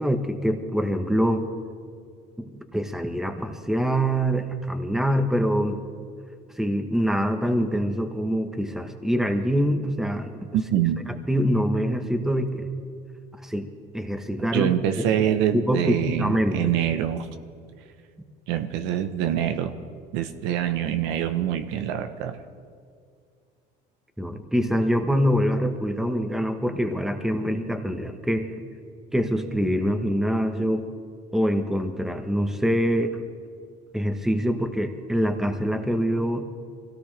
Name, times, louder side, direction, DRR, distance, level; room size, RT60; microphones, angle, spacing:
voice 1, 0.0-1.5 2.4-5.8 6.6-10.3 11.3-12.7 13.4-13.7 13.9-14.7 15.5-16.7 24.2-28.5 29.1-30.9 31.3-33.2 33.9-36.5, equal, ahead, 6 dB, 1.3 m, -24 dB
voice 2, 10.5-11.0 14.5-17.3 18.5-19.7 20.1-22.4, right 10 dB, 80° right, 9 dB, 1.0 m, -25 dB
23.5 x 17.0 x 3.4 m, 2.2 s
supercardioid pair, 95°, 19 cm